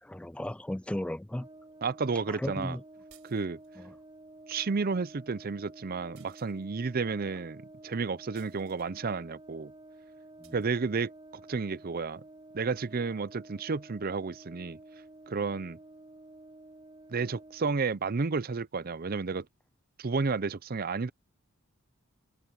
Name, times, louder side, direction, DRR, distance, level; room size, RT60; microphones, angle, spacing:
voice 1, 0.0-1.5 2.3-2.8 3.8-4.0 10.4-10.6, left 1 dB, 5° left, 0.3 m, -36 dB
Brass instrument, 1.3-17.7, right 2 dB, 20° right, 4.5 m, -51 dB
voice 2, 1.8-2.8 3.2-3.6 4.5-9.7 10.5-12.2 12.5-14.8 15.3-15.8 17.1-19.5 20.0-21.1, right 4 dB, 45° right, 0.6 m, -32 dB
sound 1, 3.1-3.8 6.1-6.9 8.3-8.9 10.4-10.7, right 11 dB, 65° right, 6.2 m, -61 dB
open air
head